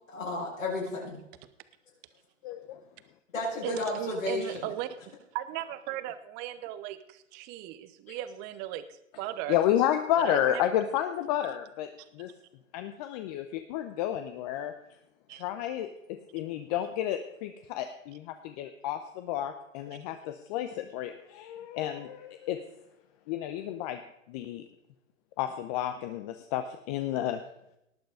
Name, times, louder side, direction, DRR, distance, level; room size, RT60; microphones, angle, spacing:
voice 1, 0.1-1.2 3.3-4.7 8.1-8.2, left 2 dB, 80° left, -6 dB, 5.9 m, -33 dB
voice 2, 2.4-2.8 9.5-11.9 12.1-12.3 12.7-14.7 15.3-22.6 23.3-24.0 24.3-24.7 25.4-27.4, left 11 dB, 30° left, 8 dB, 0.8 m, -31 dB
voice 3, 3.6-4.9 5.3-8.8 9.2-9.6 10.2-10.6 15.3-15.4, right 13 dB, 25° right, 14 dB, 0.8 m, -37 dB
18.5 x 7.9 x 4.9 m, 0.82 s
hypercardioid pair, 135°, 39 cm